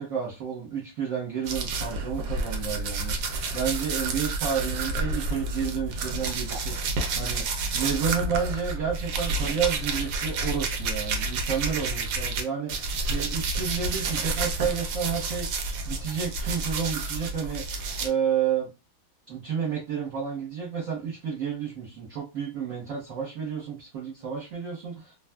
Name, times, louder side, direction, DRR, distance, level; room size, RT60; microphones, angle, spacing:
voice 1, 0.0-7.4 7.7-15.5 15.8-17.6 18.0-18.7 19.3-25.1, right 7 dB, 50° right, -4 dB, 1.2 m, -31 dB
sound 1, 1.4-12.4 12.7-18.1, right 3 dB, 70° right, 1.1 m, -30 dB
3.0 x 2.4 x 2.2 m, 0.26 s
omnidirectional pair, 2.1 m